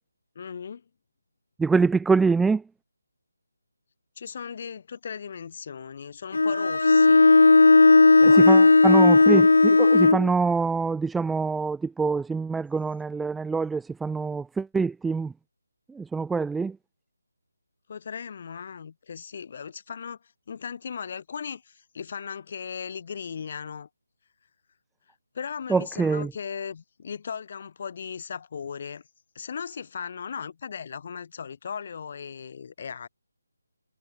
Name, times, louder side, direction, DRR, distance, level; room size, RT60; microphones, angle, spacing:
voice 1, 0.3-0.8 4.2-7.3 8.2-8.6 17.9-20.2 20.5-23.9 25.3-29.0 29.3-33.1, left 6 dB, 45° left, 3.0 m, -37 dB
voice 2, 1.6-2.6 8.4-15.3 16.0-16.8 25.7-26.3, right 4 dB, 5° right, 0.4 m, -25 dB
Bowed string instrument, 6.3-10.3, left 3 dB, 75° left, 0.4 m, -15 dB
figure-of-eight pair, 160°, 0 cm